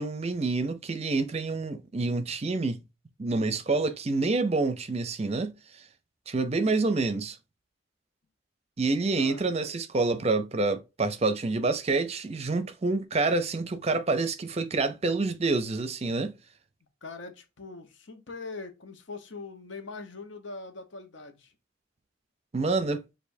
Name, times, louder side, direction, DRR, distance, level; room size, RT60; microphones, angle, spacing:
voice 1, 0.0-2.8 3.2-5.5 6.3-7.4 8.8-16.3 22.5-23.0, right 3 dB, 35° right, 0.5 m, -27 dB
voice 2, 9.1-9.5 17.0-21.5, left 3 dB, 75° left, 1.1 m, -42 dB
6.6 x 2.6 x 2.6 m
head